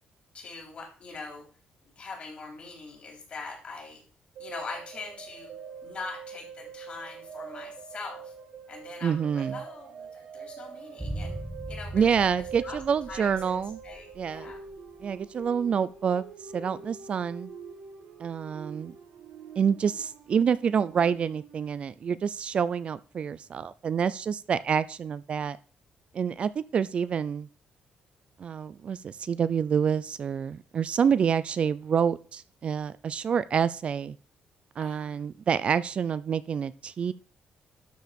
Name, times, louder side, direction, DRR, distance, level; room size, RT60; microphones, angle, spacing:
voice 1, 0.3-1.4 2.0-4.0 4.4-5.5 5.8-8.3 8.7-11.4 11.7-12.3 12.6-12.8 13.1-14.7 34.8-35.2, left 4 dB, 40° left, 1 dB, 3.8 m, -42 dB
sound 1, 4.4-21.8, right 6 dB, 85° right, 1.8 m, -45 dB
voice 2, 9.0-9.6 11.9-13.8 14.2-14.5 15.0-16.2 16.5-17.5 18.2-18.9 19.6-25.6 26.1-27.5 28.4-34.1 34.8-37.1, right 7 dB, 45° right, 17 dB, 0.4 m, -27 dB
sound 2, 11.0-15.2 15.5-15.6, right 1 dB, 10° right, 1.4 m, -40 dB
12.5 x 4.7 x 5.2 m, 0.39 s
cardioid pair, 130°, 3 cm